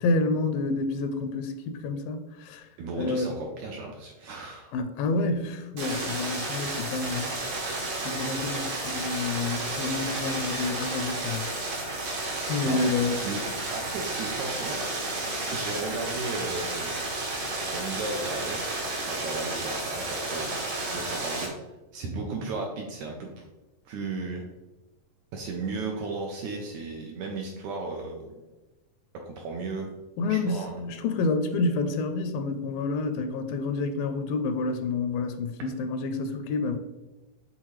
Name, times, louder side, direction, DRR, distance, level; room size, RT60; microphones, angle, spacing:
voice 1, 0.0-2.6 3.0-3.3 4.7-7.3 8.0-11.5 12.5-13.2 30.2-36.8, left 3 dB, 85° left, 8 dB, 2.3 m, -28 dB
voice 2, 2.8-4.7 12.6-12.9 13.2-13.5 13.7-14.8 15.5-16.9 17.6-18.6 19.1-20.6 20.9-21.6 21.9-23.3 23.9-24.5 25.3-28.4 29.3-29.9 30.3-30.8 35.6-35.7, right 3 dB, 75° right, 1 dB, 1.8 m, -35 dB
sound 1, 5.8-21.5, right 2 dB, 55° right, 1.3 m, -32 dB
8.1 x 3.7 x 3.1 m, 1.1 s
omnidirectional pair, 4.0 m